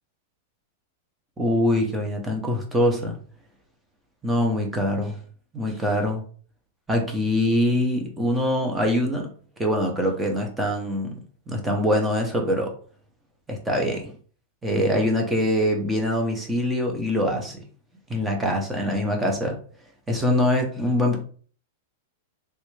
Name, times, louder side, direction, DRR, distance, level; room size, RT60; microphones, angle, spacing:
voice 1, 1.4-3.2 4.2-5.2 5.5-6.2 6.9-9.3 9.6-11.1 11.5-12.7 13.5-14.1 14.6-17.6 18.1-19.6 20.1-21.2, left 1 dB, 5° right, 1 dB, 0.6 m, -23 dB
3.2 x 2.5 x 3.1 m, 0.43 s
supercardioid pair, 170°, 0 cm